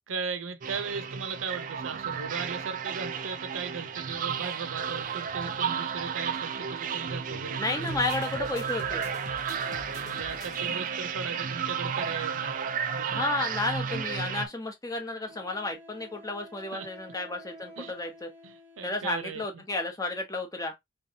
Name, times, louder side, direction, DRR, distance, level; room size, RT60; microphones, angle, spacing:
voice 1, 0.1-8.0 9.6-13.3 16.7-16.9 17.8-17.9 18.4-19.6, right 5 dB, 85° right, 0.6 m, -38 dB
sound 1, 0.6-14.5, right 7 dB, 40° right, 0.4 m, -33 dB
voice 2, 7.6-9.0 13.1-18.3 18.8-20.8, left 2 dB, 15° left, 0.8 m, -32 dB
sound 2, 7.8-11.0, left 3 dB, 55° left, 0.7 m, -48 dB
Wind instrument woodwind instrument, 15.3-19.3, equal, 10° right, 1.0 m, -50 dB
3.5 x 3.0 x 2.8 m
head